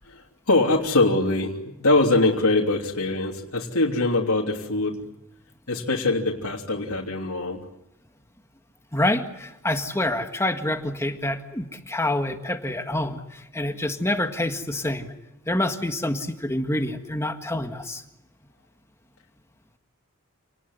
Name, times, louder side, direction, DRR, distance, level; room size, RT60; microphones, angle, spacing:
voice 1, 0.0-5.0 5.7-7.6, left 2 dB, 80° left, -2 dB, 3.2 m, -23 dB
voice 2, 8.9-15.1 15.5-18.0, left 1 dB, 10° left, 6 dB, 1.7 m, -27 dB
28.5 x 19.5 x 9.9 m, 0.86 s
head